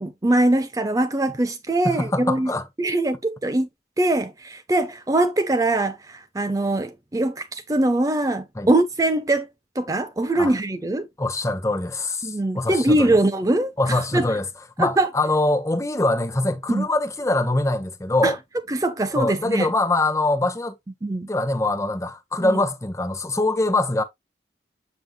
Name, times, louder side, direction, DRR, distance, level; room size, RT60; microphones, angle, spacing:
voice 1, 0.0-2.5 2.8-3.7 4.0-9.5 9.8-11.1 12.2-14.3 14.8-15.1 16.7-16.9 18.2-18.3 18.7-19.7 21.0-21.3 22.4-22.6, right 2 dB, 20° right, 0.5 m, -22 dB
voice 2, 1.8-2.7 8.5-8.7 10.3-10.5 11.2-13.2 13.8-14.5 14.8-18.4 19.1-20.8 21.3-24.0, left 2 dB, 15° left, 0.9 m, -23 dB
7.8 x 5.4 x 2.3 m
head